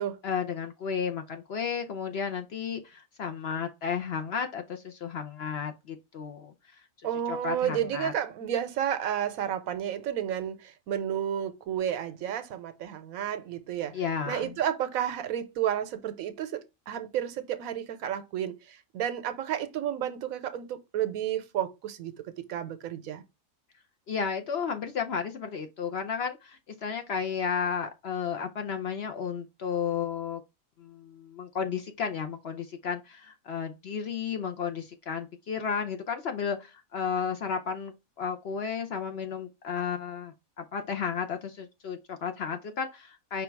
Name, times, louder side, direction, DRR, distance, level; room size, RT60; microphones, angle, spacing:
voice 1, 0.2-6.5 7.3-8.1 13.9-14.6 24.1-30.4 30.8-43.4, left 6 dB, 60° left, 0.7 m, -33 dB
voice 2, 7.0-14.0 14.2-23.2, right 10 dB, 75° right, 1.1 m, -31 dB
5.2 x 2.3 x 4.4 m
omnidirectional pair, 1.5 m